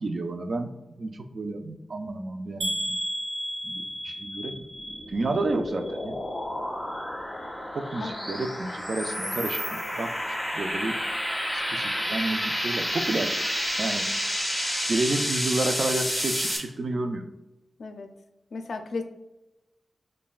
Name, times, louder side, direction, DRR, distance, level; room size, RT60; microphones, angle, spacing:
voice 1, 0.0-3.0 3.6-4.7 5.1-6.2 7.7-11.0 11.5-14.1 14.9-17.2, right 2 dB, 55° right, 8 dB, 0.4 m, -31 dB
sound 1, 2.6-6.6 6.9-7.5 8.0-8.1 8.4-8.5, equal, 90° right, 0.8 m, -34 dB
sound 2, 4.6-16.6, equal, 5° left, 1.4 m, -30 dB
voice 2, 17.8-18.1 18.5-19.0, left 3 dB, 75° left, 7 dB, 0.4 m, -34 dB
5.2 x 2.2 x 2.4 m, 1.0 s
wide cardioid pair, 80°, 0 cm